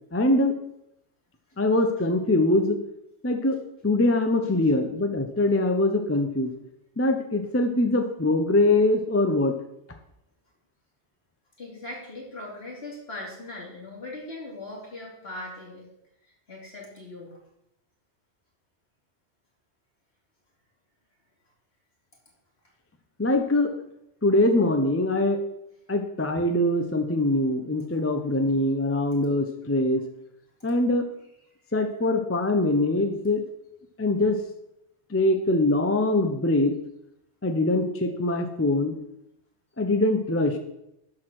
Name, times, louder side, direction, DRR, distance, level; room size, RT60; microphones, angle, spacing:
voice 1, 0.1-0.5 1.6-2.8 3.2-6.5 7.0-9.5 23.2-23.7 24.2-25.4 25.9-30.0 30.6-31.1 31.7-33.4 34.0-34.4 35.1-36.7 37.4-38.9 39.8-40.6, left 2 dB, 15° left, 5 dB, 0.7 m, -23 dB
voice 2, 11.6-15.9 16.5-17.4, left 2 dB, 60° left, -3 dB, 3.1 m, -39 dB
12.0 x 4.9 x 6.1 m, 0.82 s
omnidirectional pair, 1.2 m